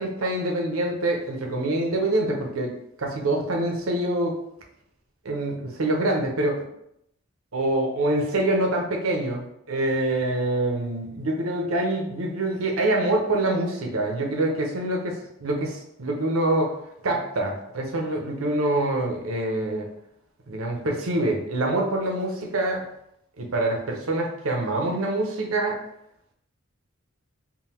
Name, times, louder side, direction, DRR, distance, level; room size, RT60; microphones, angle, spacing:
voice 1, 0.0-4.4 5.2-6.6 7.5-15.1 15.4-16.7 17.0-19.9 20.5-22.8 23.4-25.8, right 1 dB, 80° right, 1 dB, 0.8 m, -25 dB
3.8 x 2.3 x 4.3 m, 0.77 s
head